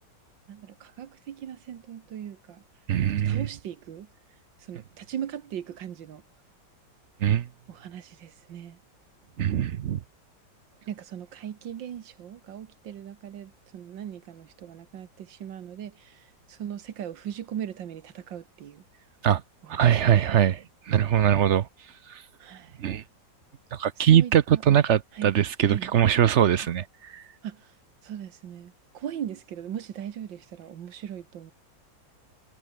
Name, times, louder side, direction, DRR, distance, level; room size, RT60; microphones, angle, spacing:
voice 1, 0.5-2.6 3.1-4.1 4.6-6.2 7.7-8.8 10.8-19.1 19.6-20.2 22.4-22.8 24.0-24.8 25.1-25.4 25.6-25.9 26.6-26.7 27.4-27.7 28.0-31.5, right 9 dB, 80° right, 1.9 m, -39 dB
voice 2, 2.9-3.3 7.2-7.4 9.4-10.0 19.2-19.4 19.7-21.7 22.8-23.0 23.7-26.8 27.1-27.2, right 10 dB, 60° right, 0.7 m, -21 dB
omnidirectional pair, 2.0 m